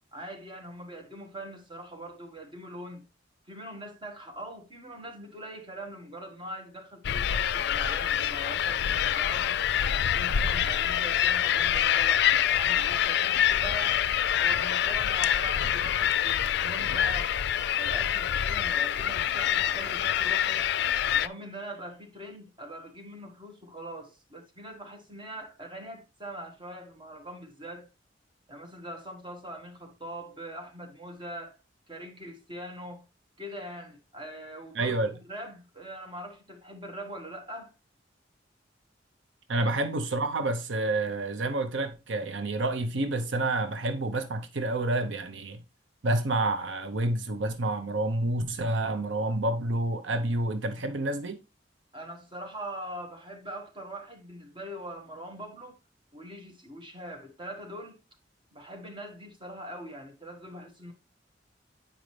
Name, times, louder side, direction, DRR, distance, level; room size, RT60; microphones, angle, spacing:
voice 1, 0.1-3.0 3.5-9.7 10.1-14.0 14.4-17.3 17.8-20.7 21.1-27.9 28.5-31.6 31.9-33.1 33.4-37.7 39.6-39.7 51.9-55.8 56.1-58.0 58.5-60.9, right 1 dB, 25° right, 1.6 m, -42 dB
sound 1, 7.0-21.3, left 10 dB, 65° left, 0.4 m, -26 dB
voice 2, 34.7-35.1 39.5-45.6 46.0-51.4, right 2 dB, 80° right, 0.8 m, -29 dB
8.9 x 5.2 x 3.2 m
head